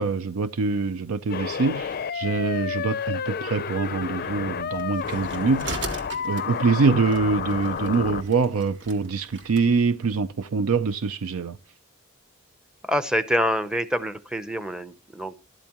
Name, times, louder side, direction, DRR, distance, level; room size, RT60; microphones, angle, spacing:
voice 1, 0.0-11.6, right 4 dB, 75° right, 0.5 m, -24 dB
sound 1, 1.3-8.2, left 7 dB, 45° left, 0.5 m, -30 dB
sound 2, 4.7-9.7, right 2 dB, 60° right, 1.5 m, -39 dB
voice 2, 12.8-15.4, equal, 5° right, 0.6 m, -26 dB
12.5 x 12.0 x 3.0 m
head